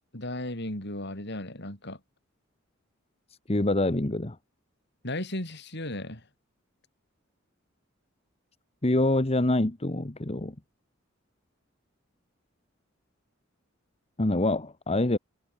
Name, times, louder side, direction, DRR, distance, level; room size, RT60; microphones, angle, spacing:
voice 1, 0.1-2.0 5.0-6.3, left 1 dB, 55° left, 7.1 m, -35 dB
voice 2, 3.5-4.4 8.8-10.5 14.2-15.2, left 2 dB, 30° left, 1.4 m, -25 dB
head